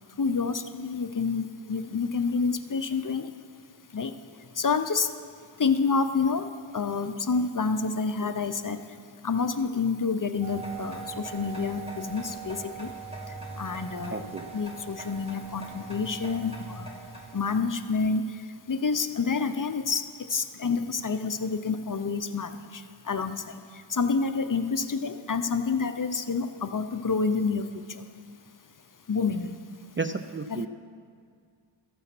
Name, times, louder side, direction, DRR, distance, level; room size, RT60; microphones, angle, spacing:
voice 1, 0.2-3.3 3.9-4.1 4.6-5.1 5.6-6.5 6.7-8.8 9.2-12.9 13.6-14.2 14.5-16.9 17.3-18.2 18.7-20.0 20.3-22.8 23.1-23.4 23.9-27.7 29.1-29.6 30.5-30.6, left 5 dB, 40° left, 10 dB, 0.6 m, -28 dB
sound 1, 10.4-17.9, right 4 dB, 10° right, 1.9 m, -41 dB
voice 2, 14.1-14.5 30.0-30.7, right 4 dB, 25° right, 8 dB, 0.3 m, -32 dB
14.0 x 6.9 x 6.0 m, 2.1 s
wide cardioid pair, 45°, 49 cm